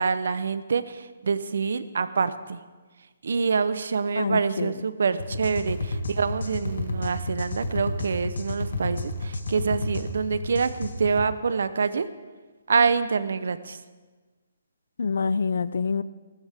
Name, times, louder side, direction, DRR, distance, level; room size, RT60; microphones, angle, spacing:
voice 1, 0.0-2.6 3.2-12.1 12.7-13.8, right 5 dB, 65° right, 13 dB, 0.7 m, -26 dB
voice 2, 4.2-4.7 15.0-16.0, left 5 dB, 65° left, 16 dB, 0.5 m, -26 dB
sound 1, 5.2-11.3, left 2 dB, 90° left, 1.5 m, -31 dB
17.0 x 13.0 x 3.6 m, 1.3 s
hypercardioid pair, 175°, 0 cm